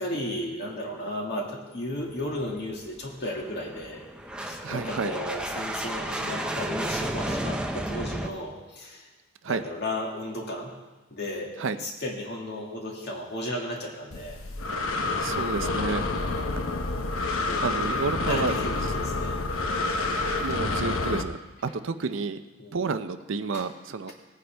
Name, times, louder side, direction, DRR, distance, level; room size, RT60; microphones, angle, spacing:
voice 1, 0.0-4.0 4.4-9.1 9.5-10.7 11.1-11.5 11.8-14.4 15.3-15.7 17.5-19.4 20.5-20.6 21.7-21.8 22.6-22.9 23.5-23.7, left 1 dB, 50° left, -1 dB, 2.1 m, -35 dB
sound 1, 2.0-8.3, right 1 dB, 5° right, 0.6 m, -33 dB
voice 2, 4.6-5.1 9.4-9.6 11.6-11.8 14.7-14.8 15.2-16.4 17.6-18.6 20.4-22.4 22.7-24.1, right 4 dB, 60° right, 10 dB, 0.5 m, -30 dB
Breathing, 14.1-21.2, left 3 dB, 70° left, 0.9 m, -28 dB
18.5 x 9.4 x 3.4 m, 1.2 s
head